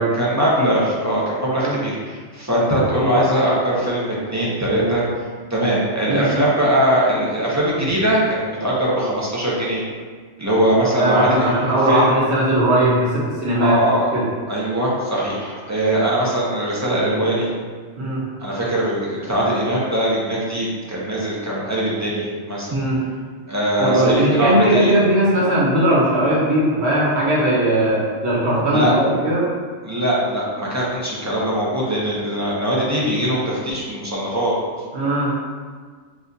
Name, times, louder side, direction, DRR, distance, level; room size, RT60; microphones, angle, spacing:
voice 1, 0.2-5.0 5.5-9.8 10.4-11.5 11.9-12.1 13.6-14.1 14.5-17.5 18.4-22.7 23.5-24.9 28.7-28.9 29.8-34.6, right 1 dB, 20° right, -6 dB, 0.5 m, -21 dB
voice 2, 11.0-13.8 14.1-14.3 18.0-18.2 22.7-23.0 23.8-29.4 34.9-35.3, right 1 dB, 60° right, -6 dB, 1.3 m, -18 dB
6.4 x 2.4 x 2.7 m, 1.6 s
omnidirectional pair, 1.3 m